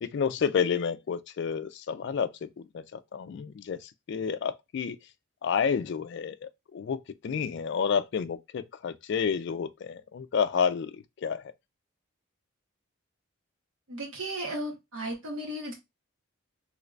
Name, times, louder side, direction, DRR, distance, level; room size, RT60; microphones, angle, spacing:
voice 1, 0.0-5.0 5.4-11.5, left 6 dB, 55° left, 0.3 m, -30 dB
voice 2, 13.9-15.7, right 1 dB, 75° right, 1.3 m, -35 dB
3.2 x 3.1 x 2.4 m
head